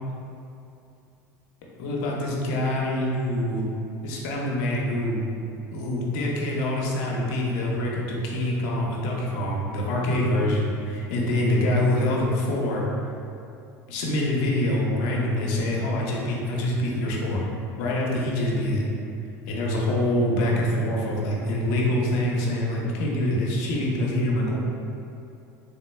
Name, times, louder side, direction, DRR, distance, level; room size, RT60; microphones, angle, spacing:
voice 1, 1.8-3.6 4.0-5.2 5.7-12.8 13.9-17.4 17.8-18.8 19.5-24.6, left 1 dB, 75° left, -3 dB, 0.6 m, -25 dB
3.5 x 2.2 x 3.2 m, 2.7 s
supercardioid pair, 95°, 9 cm